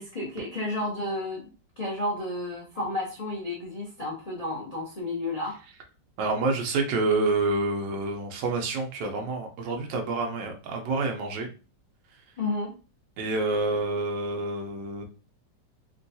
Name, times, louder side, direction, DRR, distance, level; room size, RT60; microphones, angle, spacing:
voice 1, 0.0-1.5 1.8-5.6 12.4-12.7, left 1 dB, 80° left, -3 dB, 0.3 m, -31 dB
voice 2, 6.2-11.5 13.2-15.0, right 3 dB, 80° right, 3 dB, 1.4 m, -28 dB
3.6 x 2.3 x 2.6 m, 0.33 s
omnidirectional pair, 1.9 m